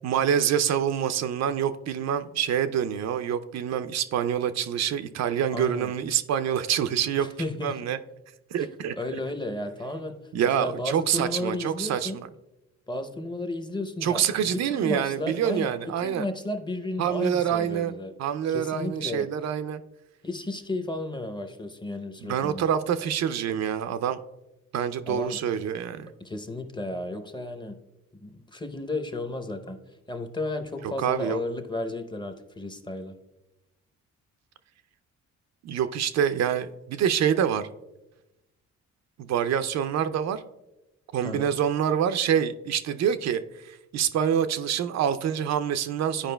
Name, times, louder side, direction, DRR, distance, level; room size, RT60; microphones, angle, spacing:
voice 1, 0.0-7.3 7.6-8.0 8.5-8.9 10.3-12.3 14.0-16.2 17.0-19.8 22.2-24.2 24.7-26.1 31.0-31.4 35.6-37.7 39.2-40.5 41.1-46.3, right 9 dB, 60° right, 11 dB, 0.4 m, -26 dB
voice 2, 5.5-5.9 7.2-7.8 8.6-10.2 10.6-12.2 12.9-18.1 18.5-19.3 20.2-22.6 25.1-25.4 26.2-27.8 28.2-29.8 30.1-33.2 41.2-41.5, left 2 dB, 15° left, 7 dB, 0.6 m, -33 dB
11.5 x 4.8 x 2.2 m, 0.98 s
cardioid pair, 90°, 30 cm